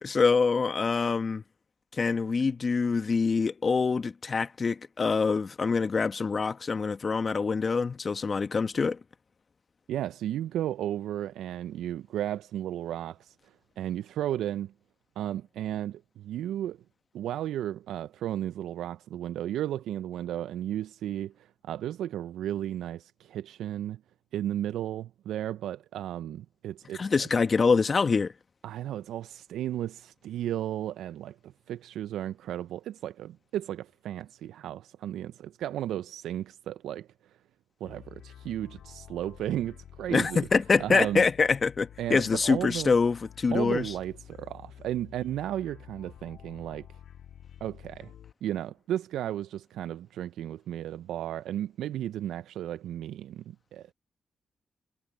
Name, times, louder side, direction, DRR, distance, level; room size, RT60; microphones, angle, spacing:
voice 1, 0.0-1.4 2.0-9.0 27.0-28.3 40.1-43.9, left 4 dB, 45° left, 1.2 m, -25 dB
voice 2, 9.9-14.7 15.2-16.8 17.1-24.0 24.3-27.3 28.6-37.4 37.8-40.5 40.8-41.2 42.0-42.9 43.5-47.0 47.6-48.1 48.4-53.9, right 12 dB, 80° right, 0.5 m, -34 dB
sound 1, 37.8-48.3, left 10 dB, 75° left, 2.6 m, -50 dB
hypercardioid pair, 45°, 0 cm